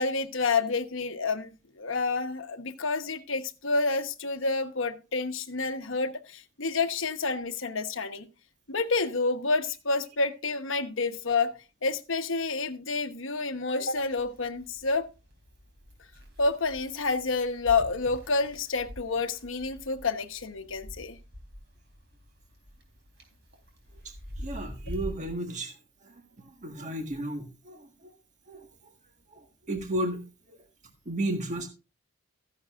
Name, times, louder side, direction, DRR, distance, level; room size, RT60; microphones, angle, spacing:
voice 1, 0.0-1.5 1.8-8.3 8.7-15.1 16.4-21.2, left 3 dB, 65° left, 1.1 m, -29 dB
sound 1, 14.0-25.3, equal, 55° right, 3.6 m, -45 dB
voice 2, 24.0-25.7 26.0-28.1 28.5-28.7 29.3-30.6 31.0-31.7, right 1 dB, 35° right, 1.5 m, -34 dB
14.0 x 10.0 x 2.5 m
head